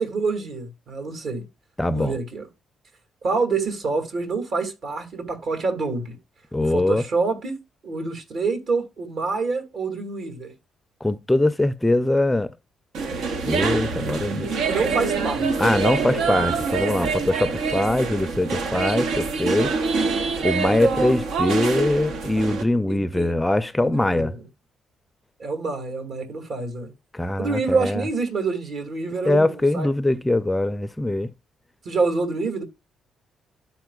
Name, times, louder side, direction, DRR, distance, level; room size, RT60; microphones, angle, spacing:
voice 1, 0.0-1.4 1.9-2.5 3.2-6.2 6.6-7.5 7.8-10.5 14.5-15.5 16.3-16.5 17.4-17.6 22.9-23.4 23.8-24.4 25.4-26.9 27.4-29.9 30.2-30.3 31.8-32.6, right 4 dB, 60° right, 2.4 m, -27 dB
voice 2, 1.8-2.2 6.5-7.0 11.0-12.5 13.4-14.5 15.6-19.7 20.4-24.3 27.1-28.1 29.2-31.3, left 1 dB, 10° left, 0.4 m, -22 dB
sound 1, 12.9-22.6, right 4 dB, 80° right, 1.0 m, -25 dB
13.0 x 4.3 x 2.4 m
cardioid pair, 90°, 0 cm